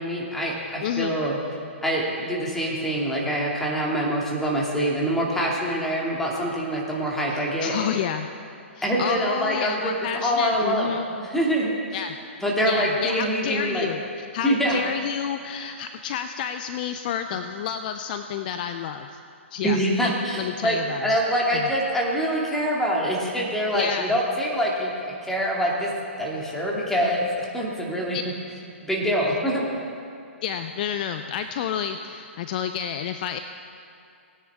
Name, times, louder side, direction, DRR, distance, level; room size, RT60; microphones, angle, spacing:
voice 1, 0.0-1.4 1.8-7.7 8.8-9.9 10.2-10.9 11.2-12.0 12.4-13.9 14.4-14.8 19.6-25.9 26.2-28.2 28.8-29.6, equal, 5° left, -4 dB, 2.2 m, -25 dB
voice 2, 0.8-1.2 7.3-8.3 8.7-11.1 11.9-12.2 12.6-19.2 19.5-21.1 21.5-21.7 23.7-24.1 28.1-28.2 30.4-33.4, left 8 dB, 40° left, 8 dB, 0.5 m, -30 dB
18.5 x 9.6 x 3.6 m, 2.5 s
hypercardioid pair, 130°, 7 cm